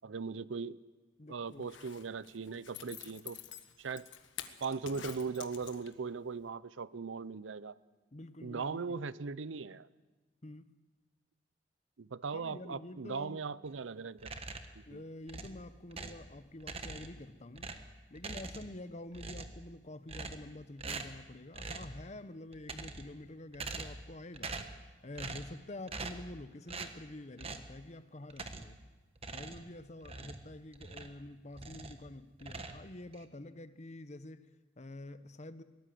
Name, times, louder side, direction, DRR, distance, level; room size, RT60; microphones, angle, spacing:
voice 1, 0.0-0.8 1.3-3.4 3.8-4.1 4.6-7.8 8.4-9.9 12.0-14.3 14.8-15.0, right 5 dB, 80° right, 18 dB, 0.6 m, -39 dB
voice 2, 1.2-1.7 8.1-9.1 10.4-10.7 12.3-13.4 14.9-17.7 18.1-24.6 25.0-28.8 29.3-35.6, left 1 dB, 35° left, 13 dB, 0.9 m, -48 dB
Zipper (clothing), 1.5-6.1 6.5-6.6, left 9 dB, 75° left, 1.5 m, -48 dB
sound 1, 14.2-14.8 15.3-16.3 16.6-17.2 17.6-18.8 19.1-19.7 20.1-20.5 20.8-21.2 21.5-22.0 22.5-23.2 23.5-24.1 24.3-24.8 25.2-25.6 25.9-26.3 26.7-27.0 27.4-27.7 28.3-28.8 29.2-31.2 31.5-32.0 32.4-33.2, right 3 dB, 30° right, 1.3 m, -44 dB
22.5 x 19.0 x 7.7 m, 1.2 s
head